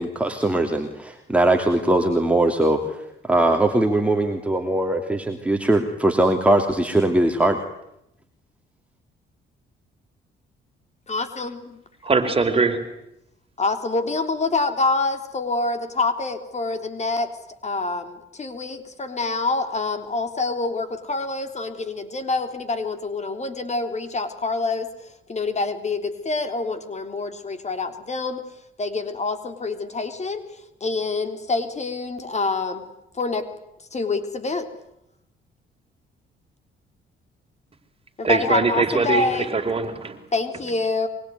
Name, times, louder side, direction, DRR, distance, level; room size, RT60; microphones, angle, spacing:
voice 1, 0.0-7.6, right 1 dB, 5° right, 3 dB, 3.0 m, -21 dB
voice 2, 11.1-11.8 13.6-17.3 17.6-28.4 28.8-32.9 33.1-33.5 33.9-34.7 38.2-39.5 40.3-41.1, left 3 dB, 35° left, 9 dB, 3.6 m, -26 dB
voice 3, 12.0-12.8 38.2-40.2, right 4 dB, 30° right, 6 dB, 4.5 m, -22 dB
24.5 x 24.0 x 9.6 m, 0.82 s
cardioid pair, 90°, 20 cm